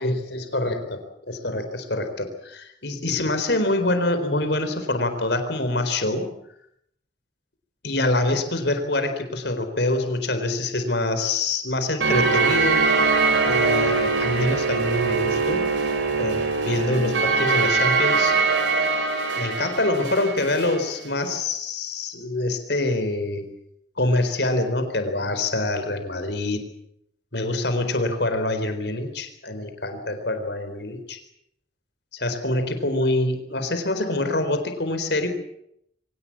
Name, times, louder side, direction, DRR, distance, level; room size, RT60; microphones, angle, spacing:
voice 1, 0.0-6.3 7.8-12.8 13.4-15.6 16.2-18.4 19.3-23.5 24.0-26.6 27.3-31.2 32.1-35.3, left 2 dB, 65° left, 8 dB, 4.2 m, -25 dB
sound 1, 12.0-20.8, right 4 dB, 85° right, 5.1 m, -22 dB
23.5 x 18.0 x 8.7 m, 0.74 s
head